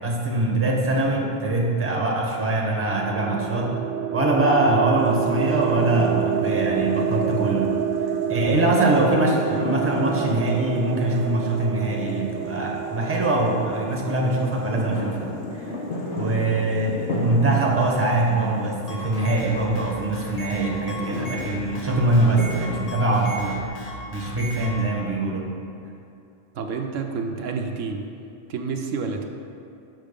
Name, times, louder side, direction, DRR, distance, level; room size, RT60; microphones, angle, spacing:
voice 1, 0.0-3.8 4.1-7.7 8.3-15.7 16.1-23.6 24.1-25.6, right 2 dB, 10° right, -1 dB, 0.8 m, -23 dB
sound 1, 2.6-14.5, right 8 dB, 60° right, 0.7 m, -28 dB
sound 2, 5.0-22.9, left 2 dB, 65° left, 1.3 m, -35 dB
sound 3, 18.7-24.8, left 1 dB, 35° left, 1.1 m, -36 dB
voice 2, 26.5-28.1 28.5-29.3, right 4 dB, 80° right, 4 dB, 1.0 m, -29 dB
6.5 x 6.0 x 5.2 m, 2.7 s
omnidirectional pair, 1.3 m